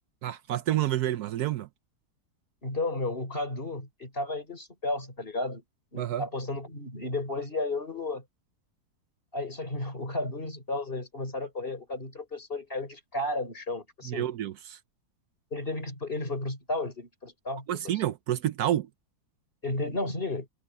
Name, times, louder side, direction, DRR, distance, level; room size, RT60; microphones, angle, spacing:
voice 1, 0.2-1.7 6.0-6.2 14.1-14.8 17.7-18.9, right 12 dB, 75° right, 1.1 m, -29 dB
voice 2, 2.6-5.6 5.9-8.2 9.3-14.3 15.5-17.7 17.9-18.0 19.6-20.5, left 2 dB, 35° left, 5.0 m, -33 dB
omnidirectional pair, 1.7 m